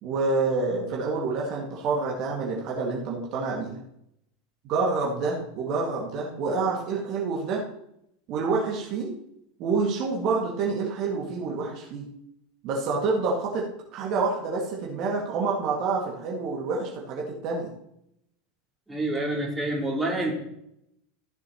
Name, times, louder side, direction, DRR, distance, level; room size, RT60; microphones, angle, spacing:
voice 1, 0.0-3.8 4.7-7.6 8.3-9.1 9.6-12.1 12.6-17.7, right 4 dB, 45° right, -2 dB, 2.0 m, -28 dB
voice 2, 18.9-20.3, right 1 dB, 10° right, -2 dB, 3.1 m, -27 dB
15.0 x 7.6 x 3.0 m, 0.78 s
figure-of-eight pair, 80°, 0 cm